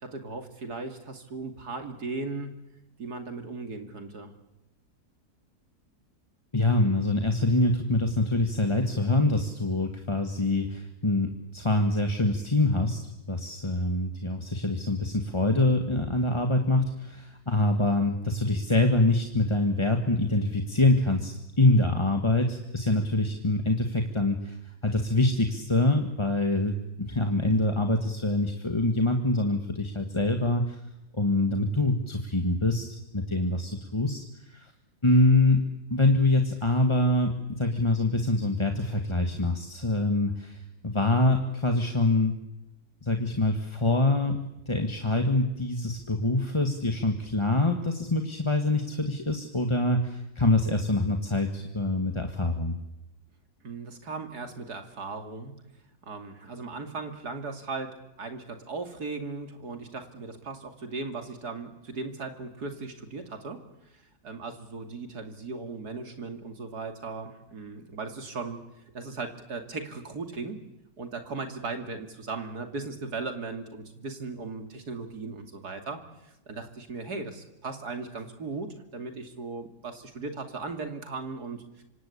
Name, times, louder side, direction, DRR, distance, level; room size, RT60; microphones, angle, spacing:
voice 1, 0.0-2.6 3.0-4.3 53.6-55.5 56.0-63.6 63.9-68.6 68.9-70.6 71.0-76.0 76.5-81.8, right 3 dB, 75° right, 6 dB, 3.2 m, -37 dB
voice 2, 6.5-13.0 13.3-24.6 24.8-30.8 31.1-32.9 33.1-34.7 35.0-42.3 43.0-44.4 44.7-52.8, left 2 dB, 20° left, 4 dB, 1.7 m, -25 dB
26.5 x 26.0 x 8.6 m, 0.91 s
omnidirectional pair, 1.7 m